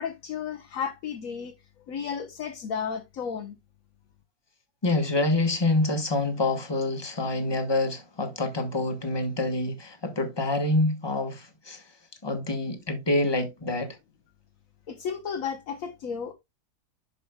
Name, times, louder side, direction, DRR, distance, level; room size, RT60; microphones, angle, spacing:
voice 1, 0.0-1.6 1.9-3.6 14.9-16.3, left 7 dB, 65° left, 1.2 m, -33 dB
voice 2, 4.8-11.8 12.2-14.0, left 2 dB, 20° left, 1.1 m, -26 dB
12.0 x 5.0 x 2.2 m
omnidirectional pair, 1.7 m